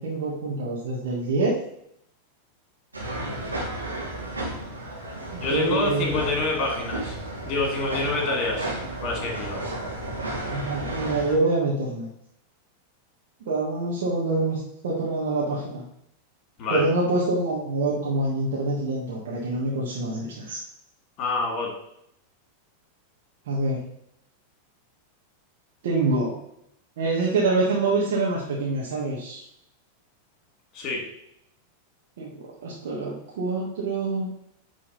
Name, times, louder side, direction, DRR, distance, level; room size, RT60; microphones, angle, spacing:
voice 1, 0.0-1.6 5.3-6.1 10.5-12.1 13.4-15.8 16.7-20.6 23.5-23.8 25.8-26.3 27.0-29.4 32.2-34.3, right 2 dB, 55° right, -5 dB, 1.6 m, -26 dB
sound 1, 2.9-11.4, right 1 dB, 80° right, 1.9 m, -33 dB
voice 2, 5.4-7.2 7.4-8.7 9.0-9.6 16.6-16.8 21.2-21.7 30.7-31.0, left 3 dB, 35° left, -1 dB, 2.8 m, -27 dB
8.8 x 3.8 x 4.0 m, 0.75 s
figure-of-eight pair, 90°, 0 cm